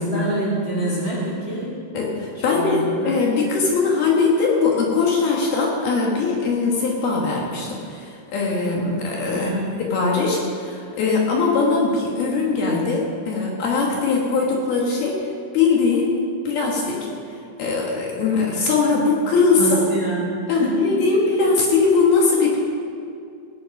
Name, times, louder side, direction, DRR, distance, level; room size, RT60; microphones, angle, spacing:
voice 1, 0.0-1.7 2.5-3.1 9.3-9.7 19.6-20.8, right 2 dB, 35° right, -5 dB, 2.1 m, -26 dB
voice 2, 1.9-9.5 9.8-17.1 17.6-19.8 20.5-22.6, left 4 dB, 65° left, -2 dB, 3.0 m, -21 dB
17.5 x 10.0 x 5.3 m, 2.4 s
omnidirectional pair, 5.4 m